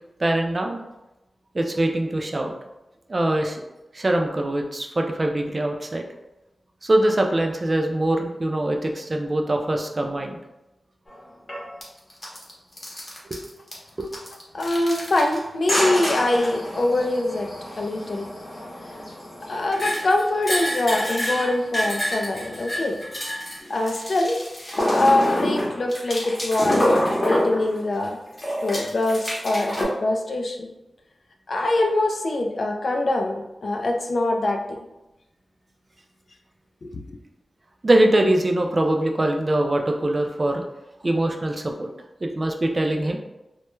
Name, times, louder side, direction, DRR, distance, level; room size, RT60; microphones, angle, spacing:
voice 1, 0.2-0.8 1.5-2.5 3.1-3.6 3.9-6.0 6.8-10.4 13.3-13.4 14.0-14.1 37.8-40.6 41.0-41.9 42.2-43.2, right 1 dB, 35° right, 3 dB, 0.3 m, -23 dB
sound 1, 11.1-11.2 11.5-11.8 12.1-12.5 12.8-13.7 14.0-15.4 15.7-28.1 28.4-29.8, equal, 35° left, 0.7 m, -27 dB
voice 2, 14.5-17.5 17.8-18.3 19.5-23.0 23.7-24.4 24.9-28.2 28.6-30.7 31.5-34.8 36.8-37.0, left 2 dB, 60° left, 2 dB, 0.3 m, -24 dB
2.2 x 2.1 x 3.0 m, 0.96 s
wide cardioid pair, 105°, 0 cm